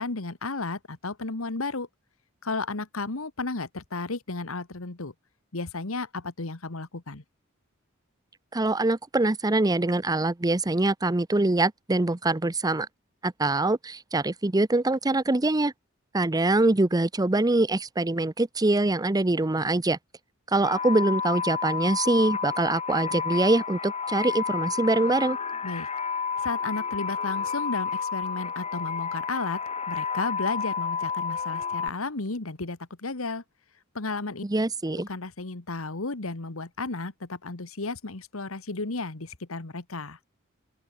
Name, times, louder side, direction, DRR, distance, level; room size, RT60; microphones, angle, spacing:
voice 1, 0.0-1.9 2.4-5.1 5.5-7.2 25.6-25.9 26.4-29.6 29.9-33.4 33.9-34.4 34.9-40.2, left 3 dB, 80° left, 1.6 m, -33 dB
voice 2, 8.5-12.9 13.2-15.7 16.1-20.0 20.5-25.4 34.4-35.1, right 2 dB, 20° right, 0.7 m, -24 dB
sound 1, 20.6-31.9, left 6 dB, 30° left, 1.5 m, -30 dB
open air
head